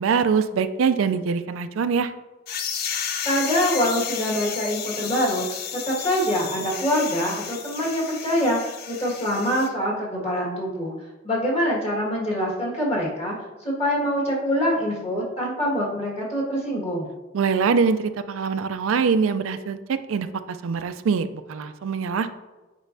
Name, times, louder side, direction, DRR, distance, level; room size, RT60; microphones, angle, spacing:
voice 1, 0.0-2.1 17.3-22.4, right 5 dB, 80° right, 10 dB, 0.4 m, -23 dB
sound 1, 2.5-9.7, left 7 dB, 50° left, 0.5 m, -32 dB
voice 2, 3.2-10.9 11.2-13.3 13.6-17.1, equal, 30° left, -4 dB, 1.7 m, -25 dB
8.1 x 5.3 x 2.6 m, 1.2 s
head